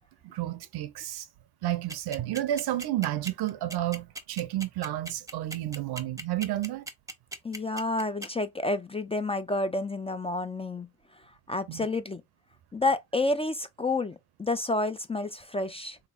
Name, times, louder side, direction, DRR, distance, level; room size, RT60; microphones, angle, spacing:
voice 1, 0.2-1.3 1.6-6.9 11.7-11.9, right 14 dB, 70° right, 0.6 m, -31 dB
sound 1, 1.9-8.3, right 2 dB, 10° right, 0.7 m, -38 dB
voice 2, 7.4-10.9 11.5-12.2 12.7-16.0, left 2 dB, 15° left, 0.4 m, -29 dB
3.5 x 2.9 x 2.4 m
supercardioid pair, 50°, 40 cm